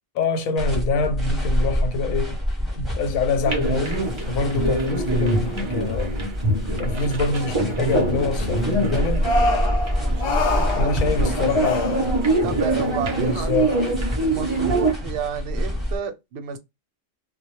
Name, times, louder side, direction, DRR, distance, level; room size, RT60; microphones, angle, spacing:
voice 1, 0.1-2.4 2.7-4.0 4.3-6.2 6.8-9.3 10.8-12.1 13.2-13.7, left 4 dB, 85° left, 1.0 m, -25 dB
sound 1, 0.6-16.0, equal, ahead, 0.6 m, -27 dB
sound 2, 3.5-14.9, right 2 dB, 45° right, 0.4 m, -25 dB
sound 3, 9.2-11.3 11.6-12.2 12.5-12.6 13.4-13.9, left 2 dB, 65° left, 0.6 m, -26 dB
voice 2, 10.0-11.9 12.4-13.8 14.3-16.6, right 7 dB, 65° right, 0.7 m, -32 dB
2.2 x 2.0 x 2.8 m
omnidirectional pair, 1.4 m